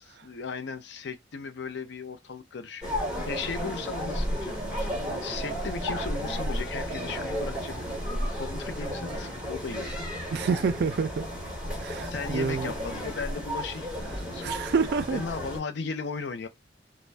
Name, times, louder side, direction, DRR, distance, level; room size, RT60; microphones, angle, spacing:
voice 1, 0.0-3.0 3.3-7.8 8.4-10.0 12.0-14.6 15.1-16.5, left 5 dB, 70° left, 0.5 m, -36 dB
sound 1, 2.8-15.6, equal, 5° right, 1.4 m, -33 dB
voice 2, 10.3-11.3 11.8-12.7 14.4-15.2, right 5 dB, 65° right, 0.4 m, -28 dB
2.5 x 2.1 x 3.2 m
head